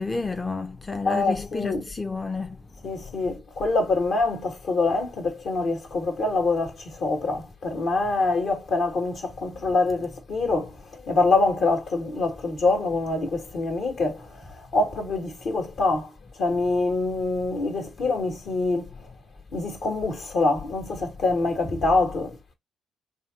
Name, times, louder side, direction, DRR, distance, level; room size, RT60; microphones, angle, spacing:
voice 1, 0.0-2.6, left 3 dB, 25° left, 0.5 m, -30 dB
voice 2, 1.0-1.8 2.8-16.1 16.4-18.9 19.5-22.4, left 3 dB, 65° left, 1.6 m, -25 dB
4.1 x 2.9 x 2.3 m
hypercardioid pair, 55°, 0 cm